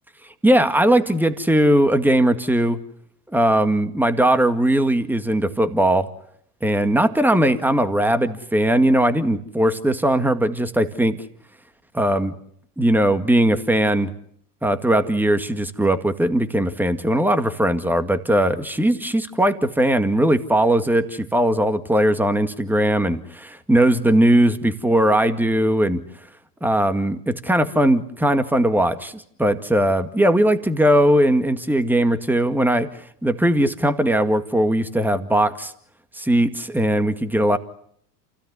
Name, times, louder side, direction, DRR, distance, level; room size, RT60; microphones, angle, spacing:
voice 1, 0.4-2.8 3.3-6.1 6.6-11.2 11.9-12.3 12.8-14.1 14.6-26.0 26.6-32.9 33.2-35.7 36.2-37.6, right 1 dB, 5° right, 10 dB, 2.0 m, -19 dB
28.5 x 16.5 x 9.7 m, 0.68 s
hypercardioid pair, 110°, 48 cm